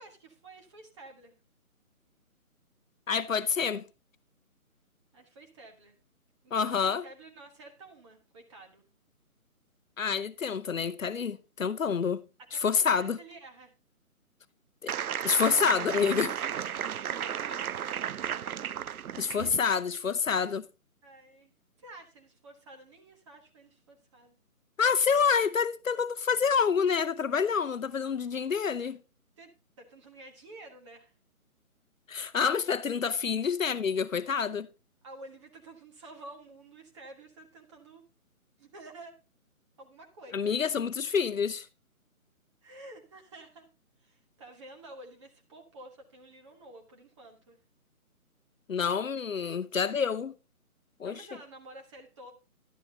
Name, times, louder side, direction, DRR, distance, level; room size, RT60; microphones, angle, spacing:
voice 1, 0.0-1.4 5.1-6.0 6.4-8.8 12.4-13.7 16.5-18.1 19.3-19.7 21.0-21.5 21.8-24.4 29.4-29.5 29.8-31.1 33.0-33.3 35.0-38.0 38.6-39.2 39.8-40.5 42.6-43.7 44.0-47.6 51.0-52.3, right 2 dB, 20° right, 1.4 m, -50 dB
voice 2, 3.1-3.8 6.5-7.0 10.0-12.2 12.6-13.2 14.8-14.9 15.2-16.4 19.2-20.7 24.8-29.0 32.1-34.7 40.3-41.6 48.7-50.3 51.0-51.2, left 6 dB, 65° left, 0.8 m, -27 dB
sound 1, 14.9-19.6, right 9 dB, 80° right, 0.5 m, -34 dB
11.5 x 10.0 x 2.9 m
figure-of-eight pair, 150°, 43 cm